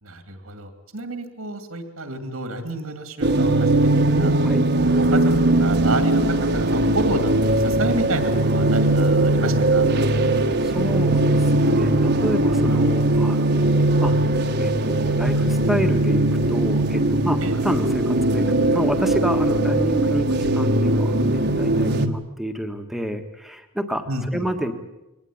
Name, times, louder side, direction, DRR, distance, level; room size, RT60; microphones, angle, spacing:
voice 1, 0.0-3.9 4.2-4.3 4.7-6.2 6.5-9.9 17.4-17.6 24.1-24.4, right 2 dB, 80° right, 8 dB, 2.5 m, -30 dB
sound 1, 3.2-22.1, right 1 dB, 50° right, 1.4 m, -20 dB
voice 2, 10.6-16.2 16.5-21.1 21.5-24.0 24.3-24.7, equal, ahead, 5 dB, 1.5 m, -29 dB
22.0 x 18.5 x 8.7 m, 0.95 s
head